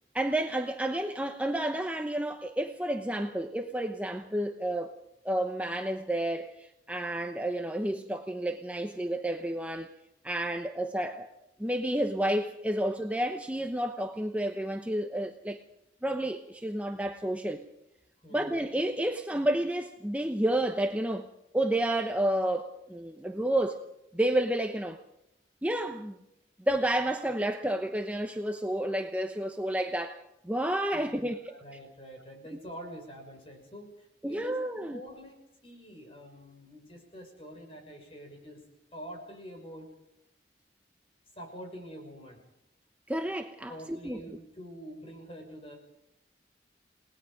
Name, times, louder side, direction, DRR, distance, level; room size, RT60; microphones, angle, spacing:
voice 1, 0.1-4.9 5.2-9.9 10.2-11.3 11.6-15.6 16.0-17.7 18.3-21.3 21.5-23.8 24.1-25.0 25.6-26.1 26.7-30.2 30.4-31.6 34.2-35.0 43.1-44.2, right 1 dB, 10° right, 0.8 m, -30 dB
voice 2, 31.5-35.4 35.6-38.6 38.9-39.9 41.4-42.4 43.7-45.7, equal, 35° left, 6.2 m, -46 dB
29.0 x 19.5 x 5.2 m
head